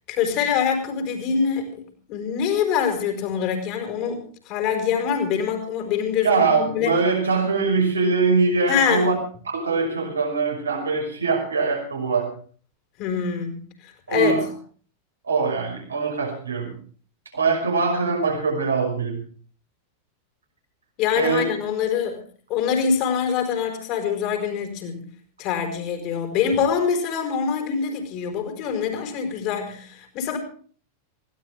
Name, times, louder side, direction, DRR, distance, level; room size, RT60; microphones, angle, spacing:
voice 1, 0.1-4.2 4.4-6.9 8.7-9.1 13.0-14.5 21.0-22.2 22.5-25.1 25.4-30.4, left 7 dB, 40° left, 6 dB, 4.7 m, -24 dB
voice 2, 6.2-9.1 9.5-12.3 14.1-14.4 15.3-16.7 17.3-19.2 21.1-21.4, right 4 dB, 75° right, 3 dB, 5.6 m, -22 dB
20.5 x 17.0 x 3.6 m, 0.44 s
figure-of-eight pair, 90°, 0 cm